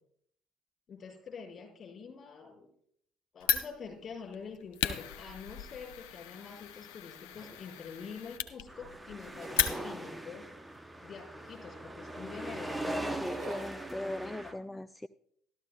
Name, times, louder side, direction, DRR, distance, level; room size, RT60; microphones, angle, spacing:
voice 1, 0.9-2.7 3.3-10.4 11.0-13.3 14.0-14.5, left 5 dB, 40° left, 0 dB, 5.4 m, -46 dB
Fire, 3.4-10.2, left 9 dB, 70° left, 0.7 m, -36 dB
sound 1, 7.3-8.6 8.9-10.0 10.5-10.9 11.4-12.8 13.1-14.1, right 3 dB, 35° right, 4.0 m, -47 dB
sound 2, 8.7-14.5, right 1 dB, 10° right, 0.9 m, -40 dB
voice 2, 13.2-15.1, left 1 dB, 10° left, 13 dB, 0.3 m, -39 dB
14.0 x 12.5 x 2.3 m, 0.67 s
hypercardioid pair, 55°, 0 cm